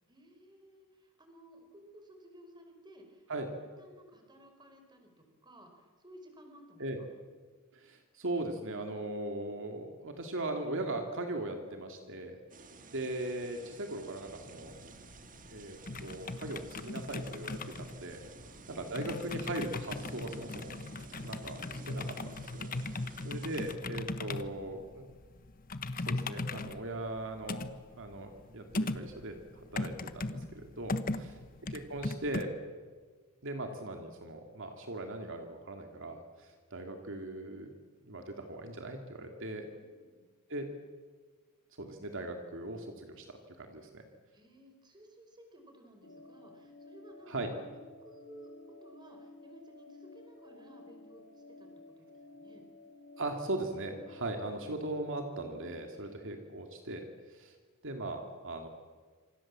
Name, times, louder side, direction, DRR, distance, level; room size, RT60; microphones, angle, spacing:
voice 1, 0.1-3.5 3.8-6.8 12.5-12.9 18.4-18.8 22.8-23.3 31.1-31.5 39.7-40.3 44.3-47.3 48.0-51.7 52.0-52.1 52.3-52.6 55.9-56.3, right 1 dB, 20° right, 4 dB, 4.8 m, -57 dB
voice 2, 7.7-12.4 12.9-14.7 15.5-18.2 18.7-20.8 21.2-22.7 23.2-25.1 26.0-27.6 28.0-31.3 31.7-32.5 33.4-37.7 38.1-39.7 40.5-40.7 41.8-44.0 47.3-47.5 53.2-57.5 57.8-58.7, right 2 dB, 60° right, 4 dB, 2.5 m, -39 dB
sound 1, 12.5-23.8, right 3 dB, 40° right, 1.6 m, -53 dB
sound 2, 14.7-32.4, left 2 dB, 40° left, 1.2 m, -39 dB
sound 3, 46.0-56.1, left 2 dB, 70° left, 2.5 m, -53 dB
27.0 x 26.0 x 7.6 m, 1.5 s
head